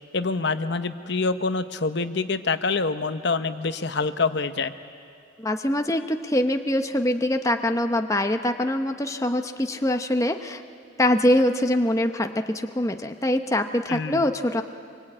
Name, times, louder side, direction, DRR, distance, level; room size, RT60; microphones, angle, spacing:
voice 1, 0.1-4.7 13.9-14.3, left 4 dB, 55° left, 10 dB, 0.8 m, -26 dB
voice 2, 5.4-10.6 11.0-14.6, left 1 dB, 15° left, 6 dB, 0.7 m, -24 dB
25.5 x 23.5 x 8.7 m, 2.4 s
head